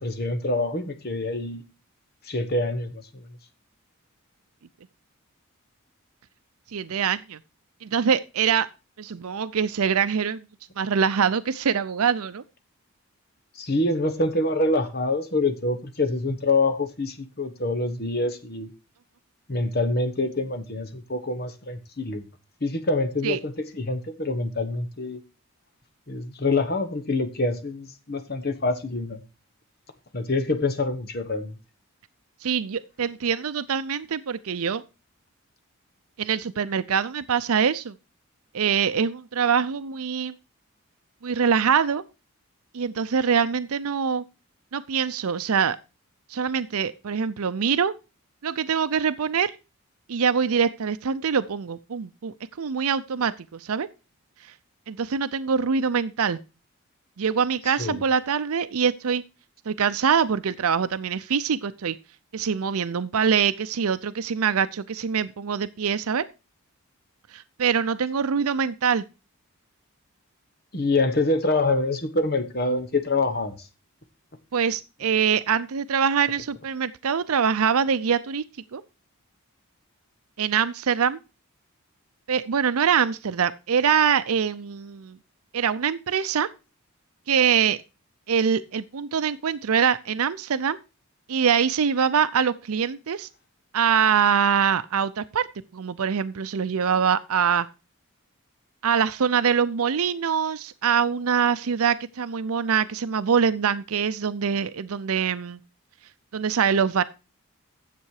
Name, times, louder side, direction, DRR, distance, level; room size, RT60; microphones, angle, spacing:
voice 1, 0.0-1.6 2.3-3.2 13.6-18.7 19.5-22.2 22.6-25.2 26.1-29.2 30.1-31.5 57.8-58.0 70.7-73.6, left 2 dB, 45° left, 1.2 m, -26 dB
voice 2, 6.7-7.4 7.8-8.7 9.0-10.4 10.8-12.4 23.2-23.4 32.4-34.8 36.2-37.9 38.5-40.3 41.2-42.0 42.7-44.2 44.7-45.8 46.3-47.9 48.4-49.5 50.1-53.9 54.9-56.4 57.2-59.2 59.7-62.0 62.3-66.2 67.3-69.0 74.5-78.4 78.7-78.8 80.4-81.2 82.3-85.2 85.5-86.5 87.3-87.8 88.3-90.8 91.3-93.3 93.7-95.5 95.7-97.7 98.8-105.6 106.3-107.0, right 7 dB, 80° right, 0.5 m, -24 dB
10.0 x 7.7 x 4.7 m
head